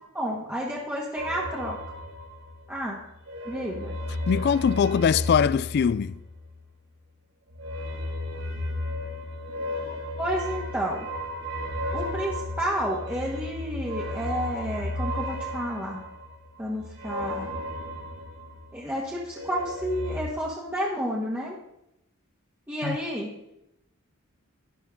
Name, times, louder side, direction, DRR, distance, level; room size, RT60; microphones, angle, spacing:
voice 1, 0.1-1.8 2.7-3.0 3.5-3.9 10.2-11.1 11.9-16.0 16.6-17.5 18.7-21.6 22.7-23.3, equal, 10° right, 1.5 m, -30 dB
sound 1, 1.2-2.8 3.1-6.6 7.5-18.9 19.2-20.2, left 1 dB, 65° right, 2.2 m, -34 dB
voice 2, 4.3-6.2 22.8-23.0, left 7 dB, 50° left, 0.3 m, -22 dB
13.0 x 9.8 x 3.7 m
head